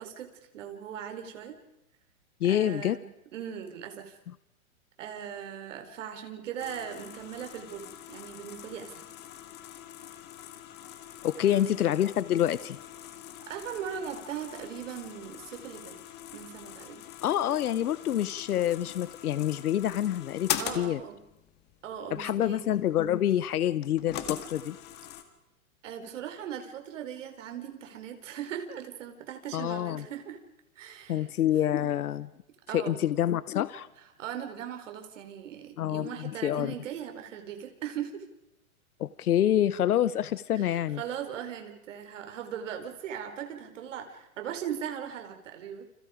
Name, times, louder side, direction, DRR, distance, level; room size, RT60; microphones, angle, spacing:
voice 1, 0.0-1.6 2.5-3.1 3.3-4.2 5.0-9.1 11.4-11.8 13.5-16.0 16.3-17.1 20.6-21.2 21.8-22.7 25.8-30.4 30.8-31.3 31.7-31.9 32.7-33.0 34.2-38.3 40.5-45.8, right 9 dB, 55° right, 6 dB, 4.5 m, -39 dB
voice 2, 2.4-3.0 11.2-12.8 17.2-20.5 20.7-21.0 22.1-24.8 29.5-30.0 31.1-32.3 32.7-33.9 35.8-36.7 39.0-41.0, left 11 dB, 85° left, 16 dB, 1.1 m, -27 dB
sound 1, 6.6-25.2, left 11 dB, 25° left, 1.9 m, -42 dB
29.5 x 28.5 x 5.1 m, 0.90 s
hypercardioid pair, 155°, 43 cm